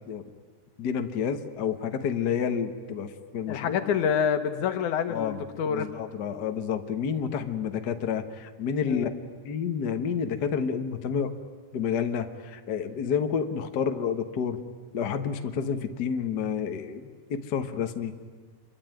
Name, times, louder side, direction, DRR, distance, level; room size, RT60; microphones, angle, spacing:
voice 1, 0.8-3.8 5.1-5.4 5.7-9.1 9.4-11.3 11.7-14.6 14.9-18.1, left 7 dB, 45° left, 7 dB, 1.4 m, -29 dB
voice 2, 3.5-5.9 8.9-9.1, left 7 dB, 75° left, 9 dB, 2.8 m, -27 dB
27.0 x 23.5 x 9.1 m, 1.5 s
omnidirectional pair, 3.6 m